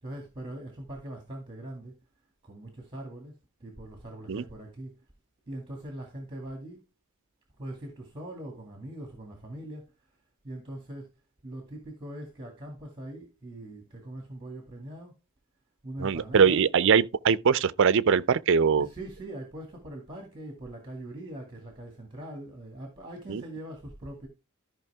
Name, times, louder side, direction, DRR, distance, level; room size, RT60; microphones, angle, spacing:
voice 1, 0.0-1.9 2.4-3.3 3.6-4.9 5.5-6.8 7.6-9.9 10.4-11.1 11.4-15.2 15.8-16.7 18.7-24.3, right 1 dB, 25° right, 2.1 m, -41 dB
voice 2, 16.0-18.9 23.3-23.4, right 6 dB, 60° right, 0.5 m, -22 dB
14.0 x 5.5 x 3.4 m
head